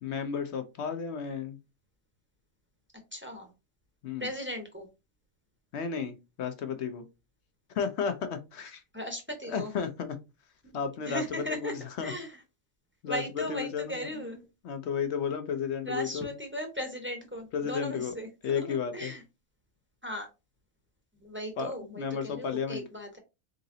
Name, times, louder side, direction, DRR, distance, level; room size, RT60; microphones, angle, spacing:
voice 1, 0.0-1.6 4.0-4.3 5.7-7.0 7.7-8.8 9.5-10.2 10.7-12.1 13.0-13.2 13.5-14.3 14.6-16.3 17.5-18.1 18.4-19.1 21.6-22.9, left 6 dB, 60° left, 8 dB, 0.8 m, -33 dB
voice 2, 3.1-3.5 4.2-4.9 8.9-9.7 11.1-11.7 12.0-12.4 13.1-14.4 15.8-19.2 20.0-20.3 21.2-23.2, equal, 10° right, 3 dB, 0.7 m, -37 dB
3.9 x 3.7 x 2.7 m, 0.26 s
omnidirectional pair, 1.4 m